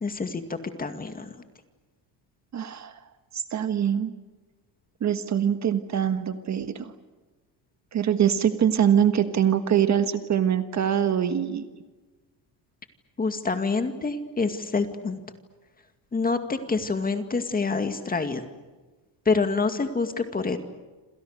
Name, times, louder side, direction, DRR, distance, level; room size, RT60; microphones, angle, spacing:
voice 1, 0.0-1.3 13.2-15.2 16.1-18.4 19.3-20.6, left 4 dB, 20° left, 8 dB, 2.2 m, -27 dB
voice 2, 2.5-3.0 3.3-4.1 5.0-6.9 7.9-11.6, right 9 dB, 40° right, 9 dB, 1.6 m, -23 dB
28.5 x 27.0 x 6.6 m, 1.2 s
cardioid pair, 150°, 45 cm